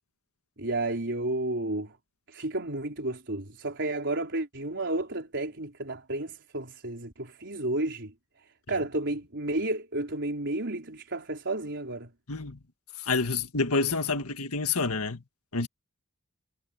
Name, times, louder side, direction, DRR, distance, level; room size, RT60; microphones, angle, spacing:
voice 1, 0.6-1.9 2.3-8.1 8.7-12.1, right 2 dB, 55° right, 4.2 m, -32 dB
voice 2, 12.3-12.6 13.0-15.2 15.5-15.7, left 4 dB, 75° left, 1.8 m, -28 dB
head